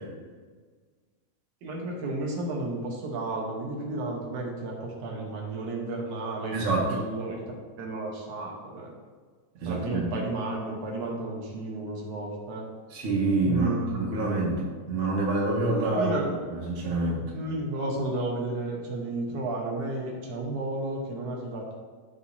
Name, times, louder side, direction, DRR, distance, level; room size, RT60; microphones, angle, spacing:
voice 1, 1.6-7.4 7.8-8.9 9.7-12.7 13.4-14.0 15.9-16.3 17.3-21.7, right 2 dB, 85° right, -1 dB, 2.6 m, -32 dB
voice 2, 6.5-7.0 9.6-10.1 12.9-14.6 14.9-16.1 16.5-17.2, right 2 dB, 55° right, -4 dB, 2.5 m, -26 dB
14.0 x 4.8 x 2.8 m, 1.5 s
omnidirectional pair, 3.3 m